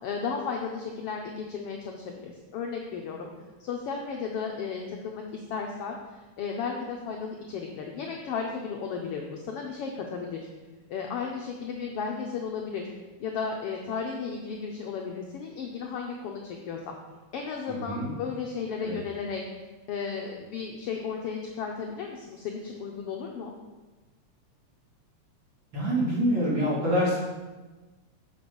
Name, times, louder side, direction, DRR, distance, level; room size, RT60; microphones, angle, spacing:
voice 1, 0.0-3.3 3.6-10.5 10.9-12.9 13.2-17.0 17.3-19.4 19.9-23.5, left 5 dB, 75° left, 1 dB, 1.4 m, -34 dB
voice 2, 17.7-18.1 18.8-19.0 25.7-27.2, equal, 45° right, -7 dB, 3.0 m, -26 dB
6.9 x 6.2 x 5.3 m, 1.2 s
omnidirectional pair, 3.3 m